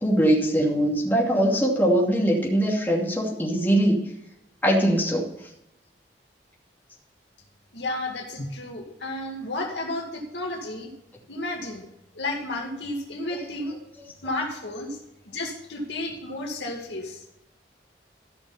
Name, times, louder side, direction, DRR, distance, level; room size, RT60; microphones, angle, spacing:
voice 1, 0.0-4.0 4.6-5.3 13.3-13.4, right 1 dB, 10° left, -4 dB, 2.7 m, -22 dB
voice 2, 7.7-10.9 11.3-11.8 12.1-13.8 14.2-15.0 15.3-17.2, left 2 dB, 80° left, 0 dB, 2.4 m, -32 dB
15.0 x 6.1 x 5.6 m, 0.86 s
head